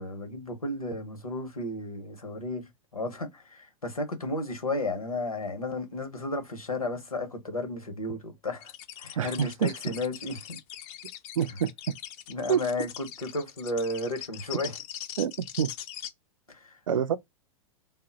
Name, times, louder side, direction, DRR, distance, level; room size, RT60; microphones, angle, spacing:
voice 1, 0.0-8.7 9.0-10.6 12.3-14.7 16.6-16.7, left 2 dB, 85° left, 0.9 m, -33 dB
sound 1, 8.6-16.1, left 11 dB, 40° left, 0.5 m, -41 dB
voice 2, 9.2-9.7 11.4-12.0 12.5-12.6 15.2-15.7 16.9-17.2, right 8 dB, 70° right, 0.5 m, -27 dB
2.1 x 2.0 x 3.8 m
figure-of-eight pair, 95°, 18 cm